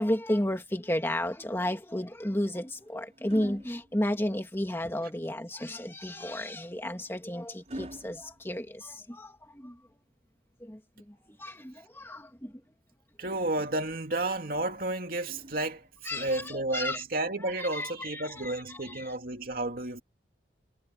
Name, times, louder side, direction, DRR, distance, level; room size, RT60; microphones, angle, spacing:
voice 1, 0.0-9.8 10.6-10.8 11.1-12.5 16.1-17.0 17.6-18.5 18.8-19.0, left 1 dB, 15° left, 2.2 m, -33 dB
sound 1, 2.1-4.6 6.2-9.4 11.2-12.3 14.3-16.1 17.3-17.6, right 1 dB, 40° right, 5.5 m, -49 dB
voice 2, 13.2-20.0, right 2 dB, 55° right, 2.5 m, -32 dB
head